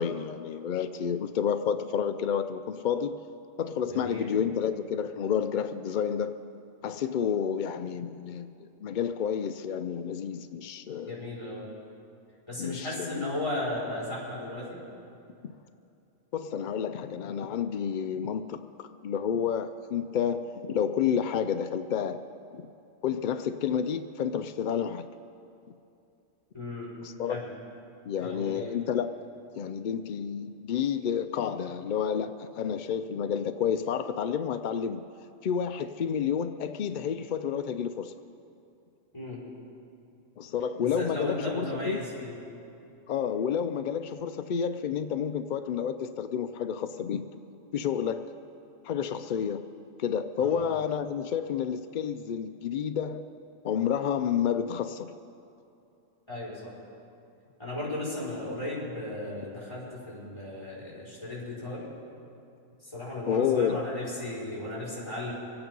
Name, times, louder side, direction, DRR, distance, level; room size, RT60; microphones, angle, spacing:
voice 1, 0.0-3.2 3.6-6.3 6.8-11.1 12.6-13.2 15.4-15.5 16.3-22.2 22.6-22.7 23.0-25.1 27.0-27.4 28.1-29.1 29.6-35.0 35.4-38.1 40.4-42.0 43.1-47.2 47.7-48.3 48.8-49.7 50.0-53.2 53.6-55.1 63.3-63.8, left 8 dB, 70° left, 9 dB, 0.4 m, -30 dB
voice 2, 3.8-4.3 11.1-11.6 12.5-14.8 26.5-26.9 27.3-27.5 28.2-28.7 39.1-39.4 40.8-42.3 50.4-50.6 56.3-56.7 57.6-61.8 62.8-65.3, left 2 dB, 20° left, -7 dB, 4.9 m, -35 dB
24.5 x 8.9 x 5.3 m, 2.7 s
omnidirectional pair, 1.3 m